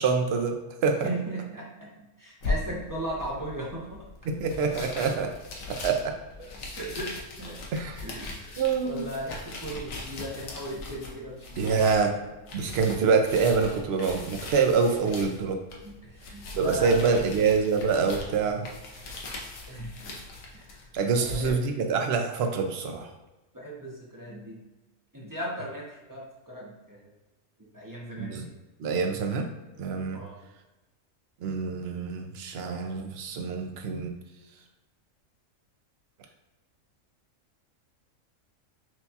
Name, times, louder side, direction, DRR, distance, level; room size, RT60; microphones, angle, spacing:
voice 1, 0.0-1.1 4.3-5.3 5.7-6.2 7.7-8.0 8.6-9.1 11.6-12.2 12.5-15.6 16.5-18.7 20.9-23.1 28.2-28.4 28.8-29.5 29.8-30.2 31.4-34.2, right 5 dB, 60° right, 4 dB, 0.7 m, -26 dB
voice 2, 1.0-4.3 6.4-7.6 8.0-12.1 15.0-15.3 15.8-17.3 19.7-20.2 20.5-20.9 21.2-21.6 23.5-24.6 25.1-27.0 27.7-28.6 30.1-30.4, right 1 dB, 20° right, -5 dB, 0.6 m, -37 dB
sound 1, 2.4-21.5, left 3 dB, 85° left, 1.2 m, -40 dB
6.0 x 2.3 x 2.7 m, 1.1 s
omnidirectional pair, 1.4 m